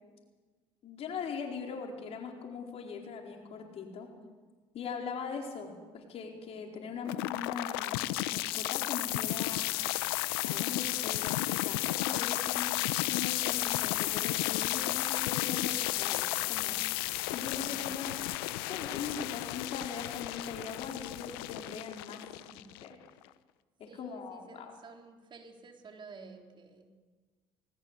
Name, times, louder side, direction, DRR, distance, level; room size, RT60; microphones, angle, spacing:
voice 1, 0.8-4.1 4.7-9.7 10.4-12.7 13.1-16.8 17.3-18.2 18.7-22.2 22.8-23.0 23.8-24.7, left 5 dB, 55° left, 2 dB, 4.5 m, -41 dB
sound 1, 7.1-23.1, left 18 dB, 85° left, 0.8 m, -33 dB
voice 2, 17.2-17.9 22.3-22.8 23.1-23.2 23.9-26.9, right 4 dB, 40° right, 3 dB, 3.8 m, -52 dB
19.5 x 19.0 x 8.3 m, 1.4 s
hypercardioid pair, 65°, 12 cm